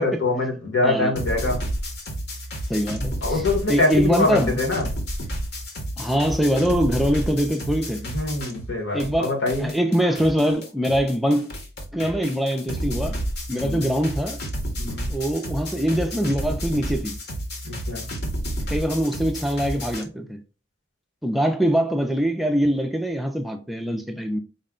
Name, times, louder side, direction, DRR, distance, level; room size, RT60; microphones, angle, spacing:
voice 1, 0.0-1.6 3.2-4.9 8.0-9.7 13.5-13.9 14.8-15.1 17.6-18.1, left 2 dB, 80° left, 1.3 m, -24 dB
sound 1, 1.1-8.7 9.0-20.0, equal, 60° left, 0.9 m, -31 dB
voice 2, 2.7-3.4 3.7-4.6 6.0-8.0 8.9-9.3 9.6-11.5 11.9-13.2 13.5-14.4 15.1-17.2 18.7-20.4 21.2-24.4, equal, ahead, 0.3 m, -23 dB
4.2 x 2.1 x 3.6 m
head